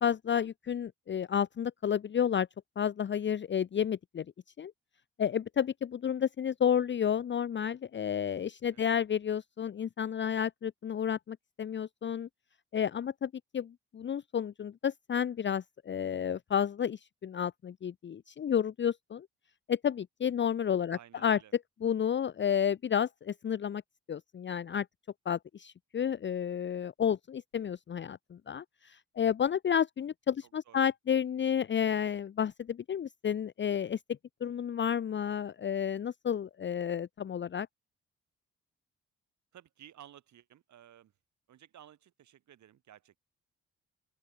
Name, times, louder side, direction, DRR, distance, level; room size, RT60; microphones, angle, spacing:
voice 1, 0.0-2.5 2.8-4.2 4.6-4.7 5.2-12.3 12.7-19.3 19.7-21.4 21.8-23.8 24.1-24.9 25.3-34.0 34.4-37.7, left 8 dB, 35° left, 0.7 m, -31 dB
voice 2, 20.9-21.5 30.7-30.9 39.5-41.1 41.5-43.2, right 11 dB, 65° right, 6.3 m, -55 dB
open air
hypercardioid pair, 45°, 31 cm